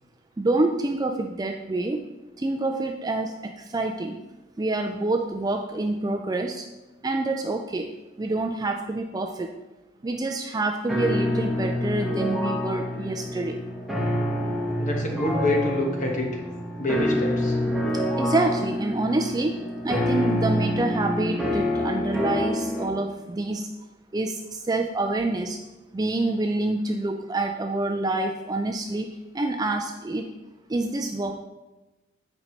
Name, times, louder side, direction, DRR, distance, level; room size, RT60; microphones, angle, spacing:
voice 1, 0.4-2.0 2.4-4.1 4.6-6.7 7.0-7.9 8.2-9.5 10.0-13.6 17.9-19.5 19.8-23.7 24.1-25.6 25.9-29.1 29.3-30.3 30.7-31.4, right 2 dB, 20° right, 4 dB, 0.3 m, -27 dB
sound 1, 10.9-22.9, left 1 dB, ahead, 1.1 m, -27 dB
voice 2, 14.8-16.3 16.8-17.6, left 1 dB, 35° left, 0 dB, 1.2 m, -26 dB
8.9 x 5.3 x 3.2 m, 1.0 s
head